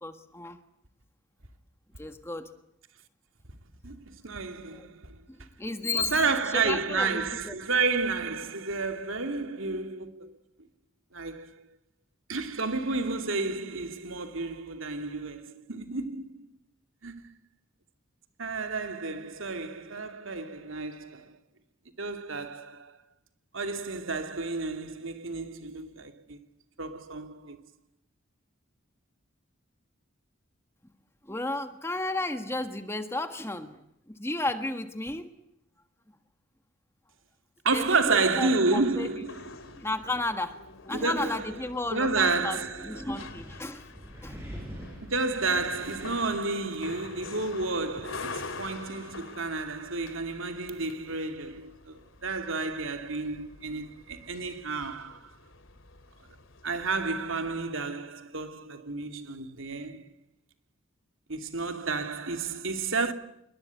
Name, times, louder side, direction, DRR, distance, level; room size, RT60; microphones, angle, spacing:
voice 1, 0.0-0.6 2.0-2.5 4.7-4.9 5.3-7.5 31.3-33.8 34.1-35.3 37.7-39.3 39.8-40.6 40.8-43.9 44.2-44.4, left 2 dB, 10° left, 1.5 m, -33 dB
voice 2, 3.8-5.1 5.9-10.3 11.1-11.7 12.3-16.4 17.0-17.2 18.4-21.3 22.0-23.0 23.5-26.4 26.8-27.6 37.6-39.4 40.9-41.5 41.9-43.1 45.0-55.3 56.6-60.1 61.3-63.1, right 3 dB, 80° right, 2.6 m, -31 dB
sound 1, 37.8-57.4, left 4 dB, 75° left, 2.5 m, -47 dB
Wind, 40.9-48.2, equal, 10° right, 7.3 m, -47 dB
28.0 x 22.5 x 8.4 m
head